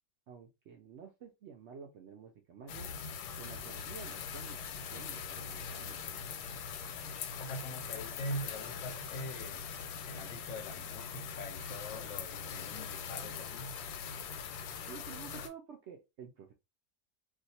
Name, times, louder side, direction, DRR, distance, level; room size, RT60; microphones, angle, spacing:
voice 1, 0.3-2.9 3.4-6.1 14.9-16.5, right 7 dB, 70° right, 0.6 m, -51 dB
sound 1, 2.7-15.5, left 7 dB, 85° left, 1.2 m, -42 dB
voice 2, 7.4-9.7 10.0-13.8, left 1 dB, 60° left, 0.8 m, -43 dB
2.5 x 2.4 x 4.1 m
omnidirectional pair, 1.7 m